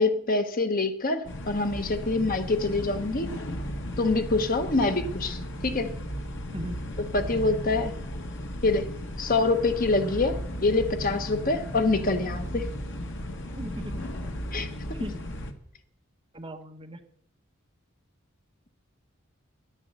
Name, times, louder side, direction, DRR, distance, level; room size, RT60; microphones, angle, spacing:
voice 1, 0.0-3.3 4.0-5.9 7.1-8.0 8.6-8.9 9.2-12.7 14.5-15.0, left 3 dB, 40° left, 8 dB, 1.0 m, -25 dB
sound 1, 1.2-15.5, equal, 60° left, 1.5 m, -35 dB
voice 2, 6.5-6.8 13.6-14.0 14.9-15.2 16.3-17.0, equal, 25° right, 4 dB, 1.3 m, -38 dB
11.0 x 11.0 x 8.0 m, 0.71 s
head